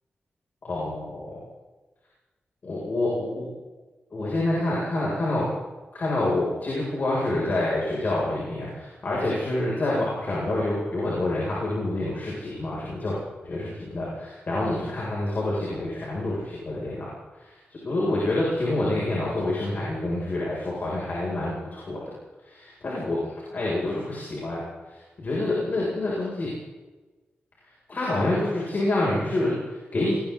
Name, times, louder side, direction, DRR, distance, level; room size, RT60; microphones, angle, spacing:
voice 1, 0.6-1.4 2.6-3.5 4.1-5.5 5.9-13.2 13.4-22.0 22.4-23.2 23.5-24.6 24.9-26.5 27.9-30.1, left 2 dB, 50° left, -5 dB, 7.8 m, -27 dB
27.5 x 23.0 x 4.3 m, 1.2 s
wide cardioid pair, 150°, 4 cm